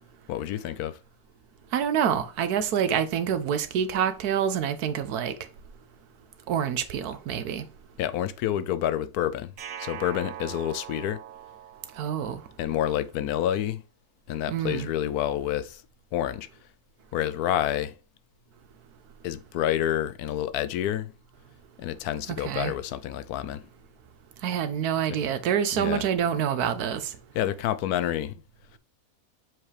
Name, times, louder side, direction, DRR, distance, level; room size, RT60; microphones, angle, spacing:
voice 1, 0.3-1.0 8.0-9.5 9.8-11.2 12.6-13.8 14.3-15.8 16.1-16.5 17.1-17.9 19.2-21.1 21.8-23.7 25.8-26.0 27.3-28.3, left 11 dB, 85° left, 1.1 m, -28 dB
voice 2, 1.7-5.3 6.5-7.6 12.0-12.4 14.5-14.9 22.3-22.7 24.4-27.1, right 8 dB, 85° right, 1.3 m, -27 dB
sound 1, 9.6-12.7, right 10 dB, 65° right, 1.1 m, -41 dB
7.4 x 4.9 x 3.3 m
omnidirectional pair, 1.6 m